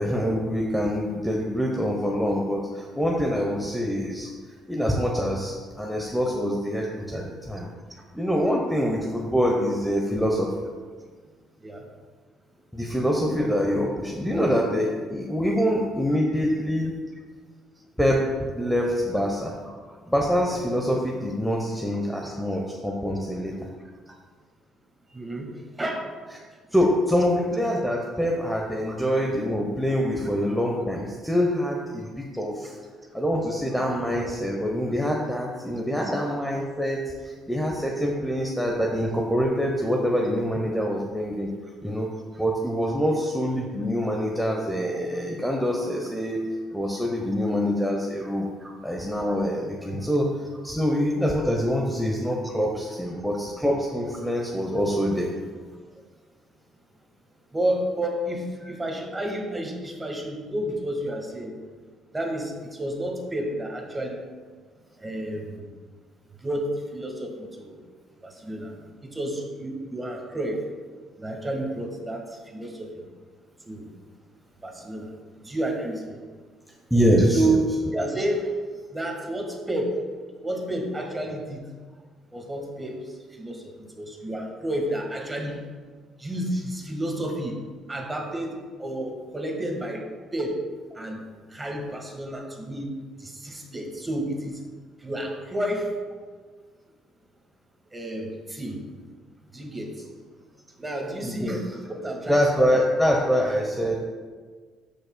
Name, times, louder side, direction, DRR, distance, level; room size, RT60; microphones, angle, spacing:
voice 1, 0.0-4.3 4.7-7.7 8.1-10.5 12.7-16.9 18.0-18.2 18.6-19.5 20.1-23.5 26.7-32.7 33.1-41.5 41.8-42.1 42.4-46.4 46.7-48.5 48.8-50.3 50.6-55.3 76.9-77.6 77.9-78.1 101.2-101.6 102.3-104.1, equal, ahead, -1 dB, 0.8 m, -25 dB
voice 2, 25.1-25.5 25.8-26.1 28.9-29.0 48.6-48.7 57.5-61.6 62.1-64.2 65.0-65.7 66.4-67.8 68.2-68.7 69.0-70.6 71.2-73.0 73.6-73.9 74.6-75.1 75.4-76.2 77.3-77.5 77.9-78.5 78.9-79.9 80.4-81.6 82.3-83.0 83.3-85.6 86.2-87.6 87.9-90.0 90.3-90.5 90.9-91.2 91.5-92.9 93.2-94.6 95.0-95.9 97.9-98.8 99.5-100.1 100.8-102.4 102.7-102.8, right 1 dB, 15° right, 1 dB, 1.5 m, -30 dB
13.0 x 5.4 x 2.2 m, 1.5 s
cardioid pair, 110°, 0 cm